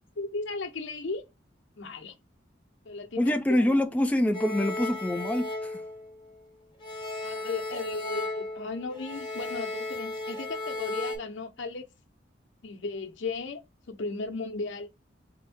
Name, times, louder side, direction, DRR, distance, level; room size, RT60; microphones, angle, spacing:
voice 1, 0.2-1.2 1.8-2.1 2.8-3.7 7.2-11.9 12.6-13.6 13.9-14.9, left 3 dB, 80° left, 0.8 m, -35 dB
voice 2, 3.2-5.8, left 1 dB, 5° left, 0.3 m, -25 dB
sound 1, 4.3-6.5 6.8-11.2, left 2 dB, 25° left, 1.4 m, -35 dB
3.8 x 2.6 x 3.5 m
head